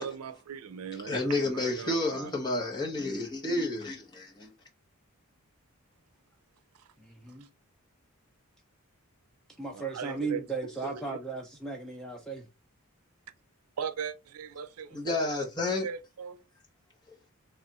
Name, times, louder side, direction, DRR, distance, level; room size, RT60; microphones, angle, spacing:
voice 1, 0.0-2.3 2.6-2.7 9.7-10.4 10.8-11.2 13.8-15.2 15.8-16.4, right 6 dB, 80° right, 0.5 m, -39 dB
voice 2, 0.9-4.5 14.9-15.9 17.1-17.2, left 2 dB, 20° left, 1.0 m, -31 dB
voice 3, 7.0-7.5 9.6-12.5, right 4 dB, 5° left, 0.4 m, -36 dB
3.4 x 2.4 x 4.0 m
head